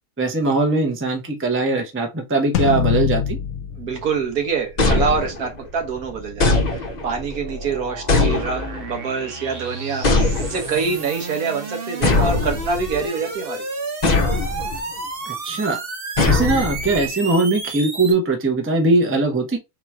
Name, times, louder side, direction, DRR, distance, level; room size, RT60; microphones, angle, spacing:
voice 1, 0.2-3.4 15.3-15.8 16.3-19.6, right 3 dB, 10° right, 0.7 m, -20 dB
sound 1, 2.5-5.1, left 7 dB, 70° left, 1.0 m, -24 dB
voice 2, 3.8-13.6, right 5 dB, 70° right, 1.6 m, -26 dB
sound 2, 4.3-18.1, right 3 dB, 40° right, 1.2 m, -33 dB
sound 3, 4.8-5.7 6.4-7.2 8.1-8.9 10.0-10.8 12.0-13.0 14.0-14.8 16.2-17.1, left 3 dB, 30° left, 0.9 m, -20 dB
3.7 x 3.0 x 4.6 m
omnidirectional pair, 1.6 m